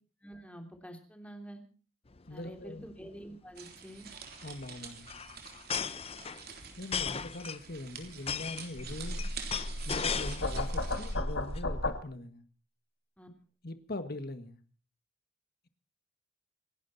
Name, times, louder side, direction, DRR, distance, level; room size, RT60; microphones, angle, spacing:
voice 1, 0.2-1.6 2.3-4.1 13.2-13.3, equal, 5° left, 3.0 m, -47 dB
sound 1, 2.1-2.3 2.6-2.7 2.9-3.2 4.1-10.7 11.1-11.6, left 7 dB, 30° left, 0.7 m, -37 dB
voice 2, 2.3-2.9 4.4-5.2 6.8-9.3 9.8-12.4 13.6-14.6, left 2 dB, 50° left, 1.7 m, -41 dB
sound 2, 3.5-11.1, right 6 dB, 50° right, 3.4 m, -47 dB
sound 3, 8.8-12.0, left 1 dB, 65° left, 2.9 m, -34 dB
28.0 x 11.5 x 4.2 m
head